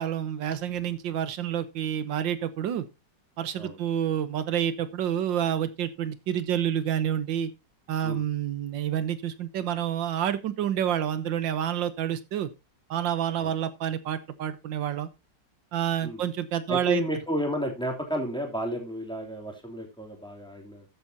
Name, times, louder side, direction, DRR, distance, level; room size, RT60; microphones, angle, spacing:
voice 1, 0.0-2.8 3.4-7.5 7.9-12.5 12.9-15.1 15.7-17.1, right 10 dB, 90° right, 13 dB, 1.7 m, -28 dB
voice 2, 16.7-20.8, equal, ahead, 1 dB, 2.9 m, -32 dB
14.0 x 8.2 x 2.8 m, 0.23 s
omnidirectional pair, 2.0 m